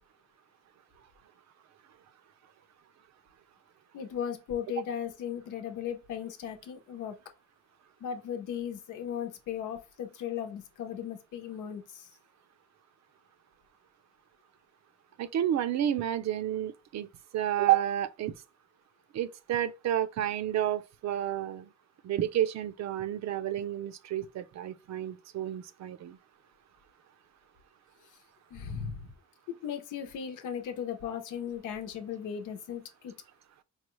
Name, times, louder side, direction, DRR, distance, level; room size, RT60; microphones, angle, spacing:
voice 1, 3.9-7.2 8.0-12.1 28.5-29.1 29.5-33.1, left 8 dB, 85° left, 0.9 m, -37 dB
voice 2, 15.2-17.1 17.3-18.3 19.1-21.7 22.0-26.2, right 11 dB, 65° right, 0.6 m, -30 dB
4.7 x 2.3 x 3.1 m
cardioid pair, 90°, 30 cm